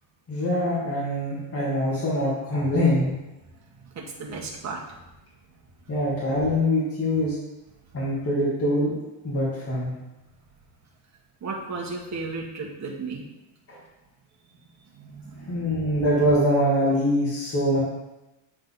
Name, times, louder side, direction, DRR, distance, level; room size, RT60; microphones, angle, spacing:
voice 1, 0.3-3.1 5.9-7.3 7.9-8.9 9.2-9.9 15.5-17.8, equal, 35° left, -8 dB, 2.3 m, -23 dB
voice 2, 3.9-4.8 11.4-13.2 14.9-15.7, right 3 dB, 40° right, -2 dB, 1.5 m, -34 dB
9.0 x 3.9 x 4.0 m, 0.97 s
cardioid pair, 140°, 42 cm